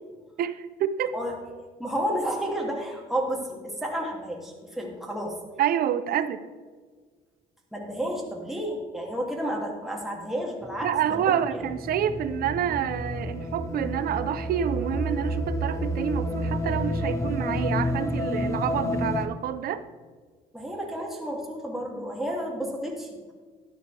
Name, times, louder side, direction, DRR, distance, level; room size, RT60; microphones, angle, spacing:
voice 1, 0.4-1.1 5.6-6.4 10.8-19.8, right 9 dB, 60° right, 12 dB, 0.8 m, -28 dB
voice 2, 1.8-5.4 7.7-11.6 20.5-23.3, equal, ahead, -2 dB, 2.8 m, -31 dB
sound 1, 10.6-19.3, equal, 15° left, 1.0 m, -30 dB
12.5 x 11.0 x 3.5 m, 1.5 s
cardioid pair, 110°, 17 cm